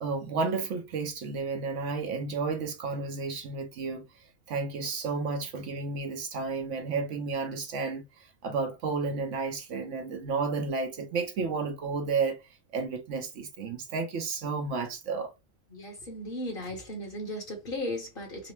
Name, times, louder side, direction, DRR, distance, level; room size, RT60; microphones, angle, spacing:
voice 1, 0.0-4.1 4.5-12.4 12.7-15.3, right 4 dB, 65° right, 1.0 m, -32 dB
voice 2, 15.7-18.5, left 1 dB, 45° left, 1.3 m, -36 dB
3.9 x 2.0 x 3.1 m
omnidirectional pair, 1.4 m